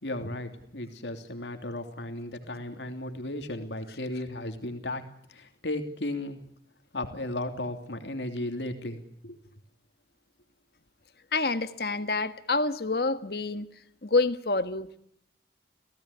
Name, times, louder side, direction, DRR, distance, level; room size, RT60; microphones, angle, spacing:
voice 1, 0.0-6.4 6.9-9.4, left 1 dB, 90° left, 6 dB, 3.0 m, -35 dB
voice 2, 11.3-13.7 14.0-14.9, left 3 dB, 60° left, 11 dB, 1.5 m, -27 dB
28.5 x 17.0 x 10.0 m, 0.73 s
head